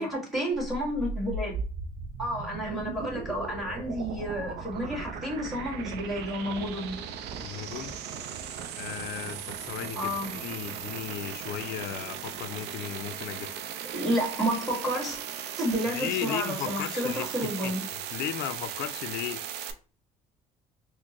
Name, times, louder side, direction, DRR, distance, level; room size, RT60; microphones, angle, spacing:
voice 1, 0.0-1.6 2.2-7.0 10.0-10.3 13.9-15.2 15.6-17.8, equal, ahead, 1.8 m, -30 dB
sound 1, 0.5-19.7, right 6 dB, 80° right, 0.5 m, -37 dB
voice 2, 7.4-7.9 8.8-13.5 15.9-17.7 18.1-19.5, left 11 dB, 75° left, 0.4 m, -36 dB
4.2 x 2.1 x 2.9 m
cardioid pair, 110°, 17 cm